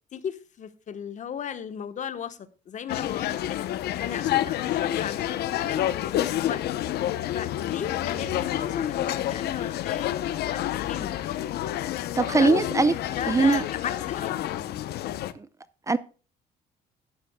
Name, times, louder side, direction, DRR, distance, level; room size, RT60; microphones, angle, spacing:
voice 1, 0.1-2.4 2.7-3.7 4.0-5.8 6.1-6.6 7.3-10.1 10.4-11.2 12.4-12.5 13.1-14.6, left 8 dB, 45° left, 1.2 m, -35 dB
sound 1, 2.9-15.3, left 13 dB, 70° left, 0.8 m, -29 dB
voice 2, 12.2-12.9 13.3-13.6 15.9-16.0, right 3 dB, 20° right, 0.6 m, -20 dB
13.0 x 10.5 x 2.3 m
cardioid pair, 110°, 17 cm